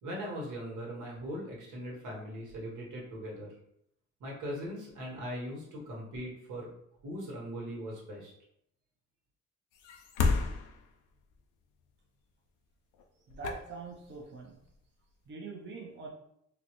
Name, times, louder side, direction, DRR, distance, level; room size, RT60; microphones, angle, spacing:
voice 1, 0.0-3.5 4.2-6.7 7.0-8.3, equal, 80° right, -3 dB, 1.3 m, -40 dB
sound 1, 9.7-11.3 12.9-13.0 13.3-14.2 14.7-14.8, left 4 dB, 85° left, 0.5 m, -31 dB
voice 2, 13.3-14.6 15.3-16.1, right 3 dB, 40° right, -1 dB, 0.6 m, -43 dB
4.0 x 2.0 x 2.9 m, 0.73 s
cardioid pair, 90°, 30 cm